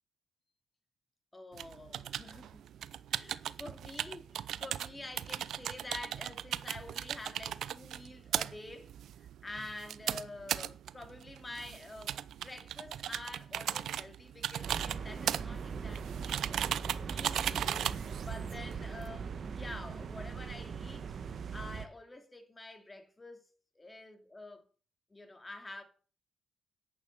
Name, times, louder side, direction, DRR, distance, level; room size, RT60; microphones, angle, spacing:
voice 1, 1.3-2.7 3.1-17.9 18.2-24.6 25.1-25.8, left 2 dB, 20° left, 2.9 m, -48 dB
sound 1, 1.5-19.1, right 10 dB, 70° right, 0.6 m, -38 dB
sound 2, 14.6-21.9, right 6 dB, 55° right, 1.3 m, -40 dB
11.0 x 8.8 x 8.2 m
cardioid pair, 90°, 0 cm